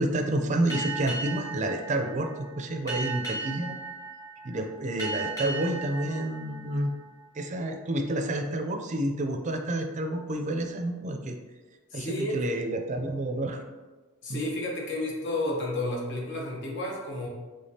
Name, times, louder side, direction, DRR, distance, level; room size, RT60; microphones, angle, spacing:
voice 1, 0.0-3.8 4.4-6.9 7.3-11.4 11.9-13.6 14.3-14.4, right 1 dB, 35° right, 4 dB, 0.4 m, -29 dB
Boat Water vehicle, 0.7-7.8, right 3 dB, 15° left, 1.1 m, -37 dB
voice 2, 11.9-12.5 14.2-17.3, left 1 dB, 55° left, -2 dB, 1.0 m, -31 dB
5.0 x 3.5 x 2.8 m, 1.3 s
head